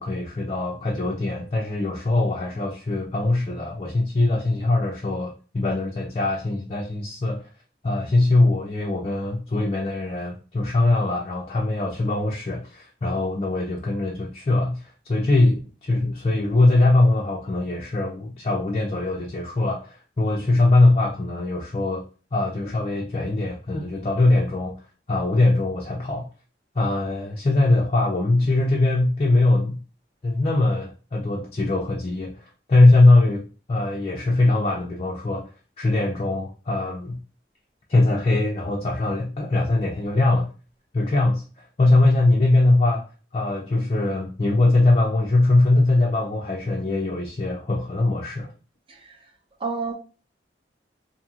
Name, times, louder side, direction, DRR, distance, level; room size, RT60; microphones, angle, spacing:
voice 1, 0.0-7.5 7.8-22.0 22.3-24.8 25.1-26.3 26.7-29.8 30.2-35.5 35.8-37.2 37.9-40.5 40.9-43.0 43.3-48.5, left 2 dB, 35° left, 0.4 m, -21 dB
voice 2, 48.9-49.3 49.6-49.9, right 4 dB, 30° right, 0.5 m, -30 dB
2.8 x 2.6 x 2.4 m
head